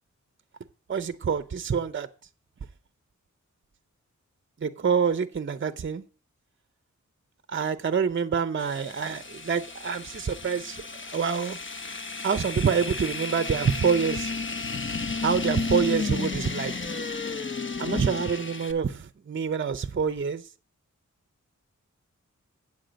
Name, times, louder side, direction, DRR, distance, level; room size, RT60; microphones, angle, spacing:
voice 1, 0.9-2.1 4.6-6.0 7.5-11.6 12.2-14.3 15.2-16.7 17.8-20.4, right 6 dB, 40° right, 0.6 m, -26 dB
sound 1, 8.6-18.7, left 4 dB, 40° left, 1.0 m, -33 dB
8.9 x 7.6 x 5.1 m
wide cardioid pair, 55°, 30 cm